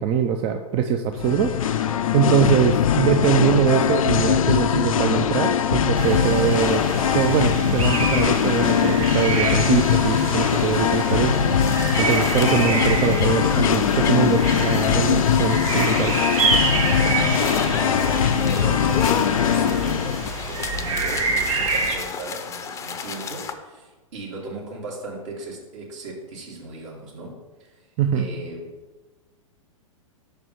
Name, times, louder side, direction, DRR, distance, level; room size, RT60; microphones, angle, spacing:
voice 1, 0.0-6.8 7.1-11.4 12.0-16.2 28.0-28.3, right 8 dB, 30° right, 6 dB, 0.5 m, -22 dB
Singing, 1.1-20.3, left 8 dB, 75° left, 0.5 m, -21 dB
sound 1, 5.9-22.0, right 3 dB, 75° right, 1.5 m, -27 dB
sound 2, 11.6-23.5, left 6 dB, 15° left, 0.6 m, -32 dB
voice 2, 16.7-27.9 28.1-28.8, right 2 dB, 60° right, -2 dB, 2.5 m, -37 dB
5.4 x 4.7 x 6.4 m, 1.2 s
hypercardioid pair, 110°, 18 cm